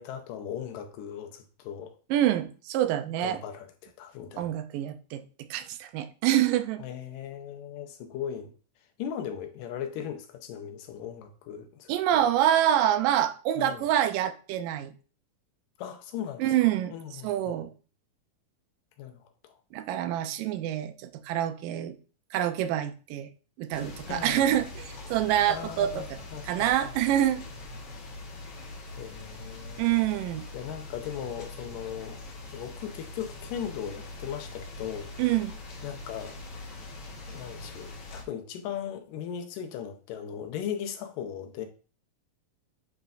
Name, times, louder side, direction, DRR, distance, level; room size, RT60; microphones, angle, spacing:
voice 1, 0.0-1.9 3.2-4.5 6.8-8.5 9.0-12.2 13.6-13.9 15.8-17.6 19.0-19.5 24.1-24.5 25.5-26.7 29.0-29.9 30.5-32.2 32.5-35.1 35.8-36.4 37.3-41.7, left 9 dB, 85° left, 2.4 m, -38 dB
voice 2, 2.1-3.4 4.4-5.2 5.5-6.8 11.9-14.9 16.4-16.9 17.2-17.7 19.7-22.0 22.3-23.3 23.6-26.2 26.4-27.4 29.8-30.5 35.2-35.5, right 11 dB, 85° right, 2.3 m, -26 dB
sound 1, 23.7-38.2, left 2 dB, 70° left, 1.0 m, -43 dB
9.3 x 4.6 x 2.5 m
omnidirectional pair, 3.9 m